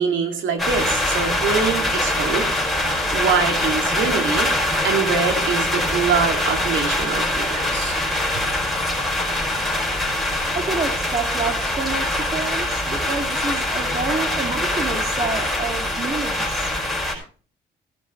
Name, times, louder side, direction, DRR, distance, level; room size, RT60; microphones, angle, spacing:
voice 1, 0.0-2.5 2.8-4.5 4.8-8.0, right 5 dB, 75° right, 4 dB, 2.4 m, -24 dB
sound 1, 0.6-17.2, left 1 dB, ahead, 5.0 m, -23 dB
voice 2, 10.5-16.7, right 4 dB, 30° right, 5 dB, 2.3 m, -28 dB
15.5 x 12.5 x 3.1 m, 0.40 s
cardioid pair, 90°, 20 cm